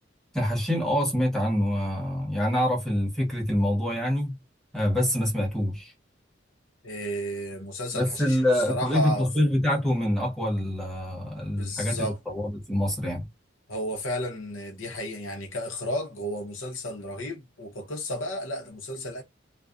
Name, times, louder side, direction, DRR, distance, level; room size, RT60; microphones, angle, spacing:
voice 1, 0.3-4.4 4.7-5.9 7.9-13.3, left 1 dB, ahead, 0.9 m, -26 dB
voice 2, 6.8-9.3 11.6-12.2 13.7-19.2, equal, 85° left, 0.8 m, -33 dB
2.4 x 2.2 x 2.4 m
head